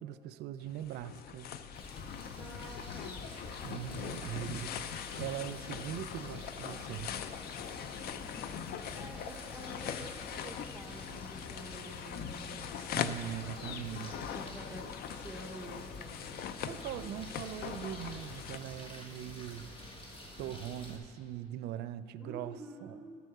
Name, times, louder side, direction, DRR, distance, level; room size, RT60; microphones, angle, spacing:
voice 1, 0.0-1.5 3.6-4.8 5.2-7.2 12.8-14.1 16.6-19.7 20.4-23.0, right 11 dB, 75° right, 13 dB, 0.4 m, -41 dB
sound 1, 0.6-18.6, left 8 dB, 65° left, 0.5 m, -41 dB
sound 2, 1.7-21.0, left 1 dB, 30° left, 1.5 m, -50 dB
voice 2, 2.4-3.3 7.9-12.7 14.2-14.9 15.2-17.3 22.2-23.2, right 1 dB, 5° right, 1 dB, 1.2 m, -49 dB
13.5 x 4.6 x 6.5 m, 2.3 s
cardioid pair, 110°, 17 cm